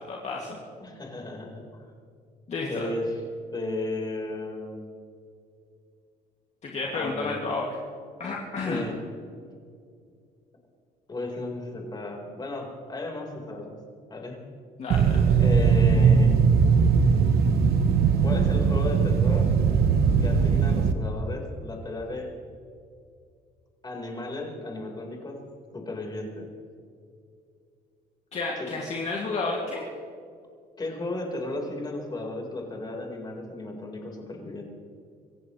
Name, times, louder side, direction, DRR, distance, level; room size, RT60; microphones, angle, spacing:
voice 1, 0.0-0.6 2.5-2.9 6.6-7.8 8.2-8.8 14.8-15.4 28.3-29.9, left 3 dB, 40° left, -2 dB, 2.5 m, -31 dB
voice 2, 0.8-1.8 2.7-3.2 3.5-4.9 6.9-7.4 8.7-9.0 11.1-13.8 14.1-14.4 15.4-16.4 18.2-19.5 20.2-22.3 23.8-25.4 25.7-26.5 28.6-28.7 30.8-34.6, left 2 dB, 25° left, 0 dB, 4.5 m, -34 dB
sound 1, 14.9-20.9, right 6 dB, 65° right, 1.2 m, -20 dB
26.0 x 15.5 x 3.3 m, 2.3 s
cardioid pair, 110°, 17 cm